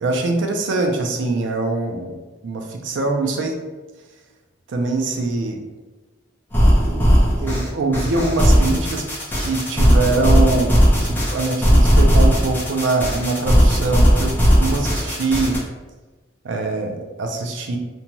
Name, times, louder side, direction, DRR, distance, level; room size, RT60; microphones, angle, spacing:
voice 1, 0.0-2.2 2.4-3.6 4.7-5.6 6.8-7.1 7.4-15.6 16.4-17.8, right 3 dB, 80° right, 3 dB, 0.4 m, -23 dB
sound 1, 6.5-15.6, equal, 10° left, 0.5 m, -16 dB
2.6 x 2.2 x 2.9 m, 1.2 s
head